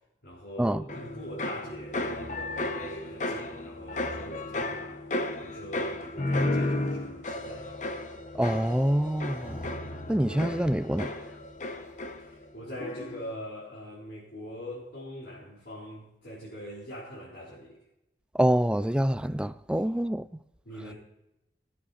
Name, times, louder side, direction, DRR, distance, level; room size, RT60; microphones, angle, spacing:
voice 1, 0.2-5.0 5.4-7.8 12.2-17.8 19.8-20.0 20.7-20.9, equal, 80° left, 3.9 m, -42 dB
sound 1, 0.9-12.5 12.8-13.3, left 2 dB, 45° left, 1.0 m, -33 dB
voice 2, 8.3-9.7 10.1-11.2 18.3-20.3, right 1 dB, 5° right, 0.3 m, -26 dB
18.0 x 8.4 x 4.2 m
head